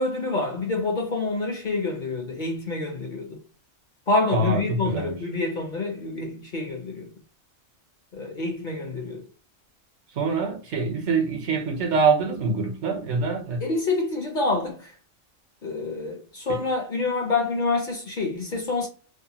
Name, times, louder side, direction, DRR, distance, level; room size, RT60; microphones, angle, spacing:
voice 1, 0.0-3.4 4.1-7.1 8.1-9.2 13.6-15.0 15.6-18.9, left 3 dB, 55° left, 0.6 m, -27 dB
voice 2, 4.3-5.2 10.1-13.6 16.5-16.6, right 4 dB, 70° right, 0.9 m, -25 dB
2.7 x 2.1 x 2.8 m
omnidirectional pair, 1.3 m